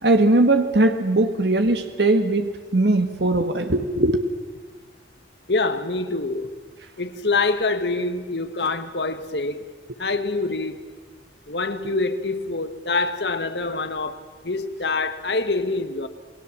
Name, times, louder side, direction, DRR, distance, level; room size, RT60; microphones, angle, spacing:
voice 1, 0.0-4.2, right 2 dB, 75° right, 1.5 m, -20 dB
voice 2, 5.5-6.5 7.0-9.6 10.0-10.8 11.5-14.2 14.4-16.1, left 3 dB, 75° left, 1.6 m, -25 dB
29.0 x 20.5 x 7.4 m
head